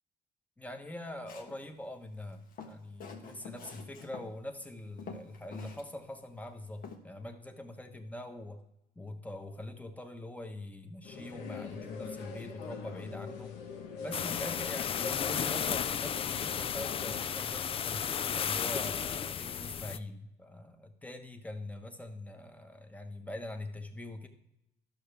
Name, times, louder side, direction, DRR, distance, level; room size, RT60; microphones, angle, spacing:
voice 1, 0.6-8.6 9.0-13.6 14.0-24.3, left 1 dB, 10° left, 6 dB, 1.1 m, -43 dB
Walk footsteps, 1.3-1.6 2.3-4.3 4.6-4.7 5.0-5.8 6.1-6.2 6.8-7.0, left 5 dB, 55° left, 1.3 m, -46 dB
sound 1, 11.0-17.2, left 5 dB, 90° left, 1.2 m, -43 dB
sound 2, 14.1-20.0, left 8 dB, 35° left, 0.3 m, -34 dB
12.0 x 6.5 x 3.4 m, 0.85 s
cardioid pair, 110°, 17 cm